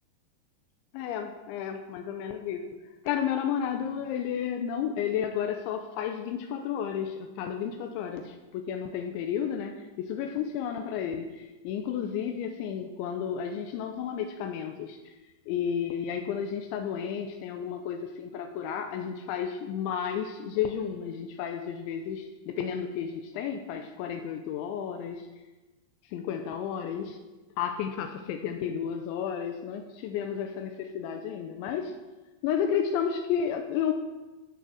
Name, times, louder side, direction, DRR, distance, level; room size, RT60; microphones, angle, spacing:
voice 1, 0.9-15.0 15.5-25.3 26.1-27.2 27.6-31.9 32.4-33.9, left 8 dB, 85° left, 5 dB, 3.1 m, -32 dB
16.5 x 7.0 x 6.3 m, 1.1 s
omnidirectional pair, 5.3 m